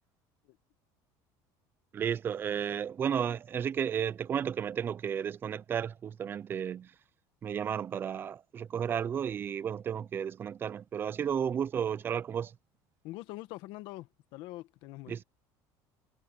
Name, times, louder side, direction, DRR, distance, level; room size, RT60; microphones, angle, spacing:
voice 1, 1.9-6.9 7.4-12.6 15.1-15.2, right 8 dB, 25° right, 0.4 m, -33 dB
voice 2, 13.0-15.1, left 18 dB, 65° left, 1.3 m, -44 dB
cardioid pair, 165°, 9 cm